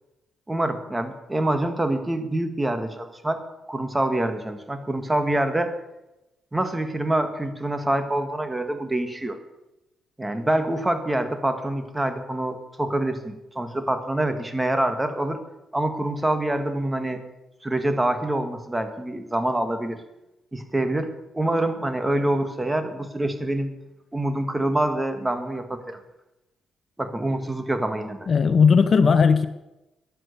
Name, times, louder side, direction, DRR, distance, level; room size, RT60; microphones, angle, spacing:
voice 1, 0.5-3.4 3.7-5.7 6.5-9.4 10.2-15.4 15.7-17.2 17.6-20.0 20.5-21.1 21.3-23.7 24.1-26.0 27.0-28.3, right 1 dB, 10° right, 7 dB, 1.8 m, -26 dB
voice 2, 28.3-29.5, left 5 dB, 45° left, 12 dB, 0.8 m, -17 dB
13.5 x 11.0 x 6.7 m, 0.96 s
cardioid pair, 90°, 0 cm